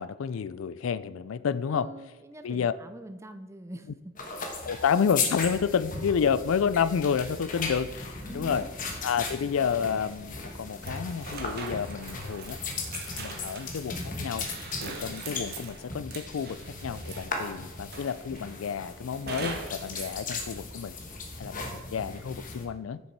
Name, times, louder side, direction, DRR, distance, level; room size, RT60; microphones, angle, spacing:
voice 1, 0.0-1.9 2.4-2.7 4.6-8.7 9.0-12.6 13.2-14.5 14.8-20.9 21.4-23.0, left 7 dB, 85° left, 16 dB, 0.4 m, -30 dB
voice 2, 1.7-4.0 8.3-8.7, right 1 dB, 15° right, 9 dB, 0.4 m, -44 dB
sound 1, 4.2-22.6, left 4 dB, 40° left, 1.3 m, -37 dB
sound 2, 10.8-17.5 17.9-18.5 19.3-20.2, right 4 dB, 50° right, 1.1 m, -42 dB
7.1 x 6.6 x 4.6 m, 1.2 s
head